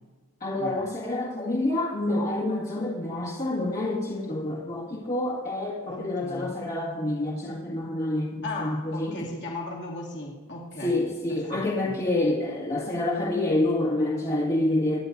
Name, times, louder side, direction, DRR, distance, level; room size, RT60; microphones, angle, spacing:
voice 1, 0.4-9.2 10.8-15.0, left 1 dB, 35° left, -6 dB, 2.0 m, -27 dB
voice 2, 5.9-6.5 8.4-11.0 11.3-11.9, left 2 dB, 55° left, -2 dB, 2.5 m, -37 dB
24.5 x 10.0 x 2.7 m, 1.4 s
head